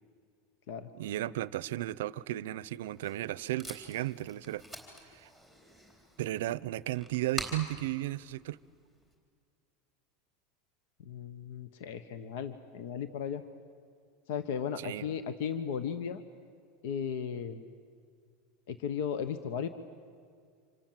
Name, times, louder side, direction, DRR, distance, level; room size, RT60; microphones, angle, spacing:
voice 1, 0.9-4.6 5.1-5.3 6.2-8.6 14.8-15.1, right 15 dB, 90° right, 0.6 m, -34 dB
Packing tape duct tape, 2.7-9.1, equal, 10° left, 3.9 m, -46 dB
voice 2, 11.0-13.4 14.3-16.2 16.8-17.7 18.7-19.7, left 7 dB, 60° left, 1.2 m, -36 dB
28.5 x 26.5 x 7.5 m
supercardioid pair, 180°, 0 cm